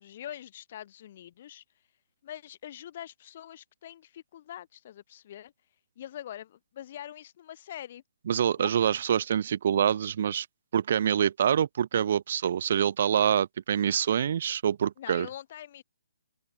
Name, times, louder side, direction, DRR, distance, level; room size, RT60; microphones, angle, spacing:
voice 1, 0.0-1.6 2.2-5.5 6.0-8.0 8.6-8.8 15.0-15.8, left 11 dB, 40° left, 2.4 m, -44 dB
voice 2, 8.3-10.5 10.7-15.3, right 9 dB, 50° right, 1.0 m, -26 dB
open air
hypercardioid pair, 155°, 0 cm